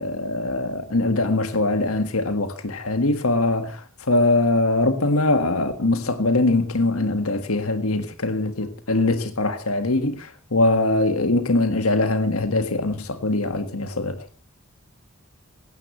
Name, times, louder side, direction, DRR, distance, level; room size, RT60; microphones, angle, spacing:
voice 1, 0.0-3.8 4.1-14.2, left 2 dB, 80° left, 1.6 m, -22 dB
18.5 x 16.5 x 3.1 m
head